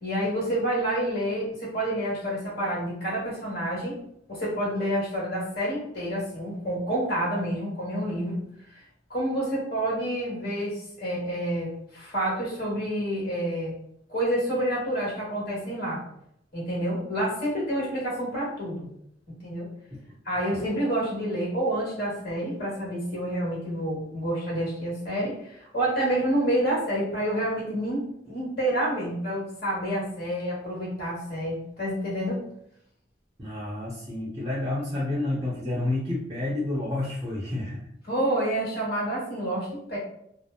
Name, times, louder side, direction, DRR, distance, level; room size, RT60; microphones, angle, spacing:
voice 1, 0.0-3.9 4.3-8.4 9.1-13.7 14.1-16.0 16.5-18.9 19.4-19.7 20.2-32.4 38.1-40.0, right 1 dB, 60° left, -5 dB, 1.2 m, -28 dB
voice 2, 33.4-37.8, left 2 dB, 25° right, -6 dB, 0.6 m, -30 dB
2.7 x 2.0 x 2.3 m, 0.72 s
head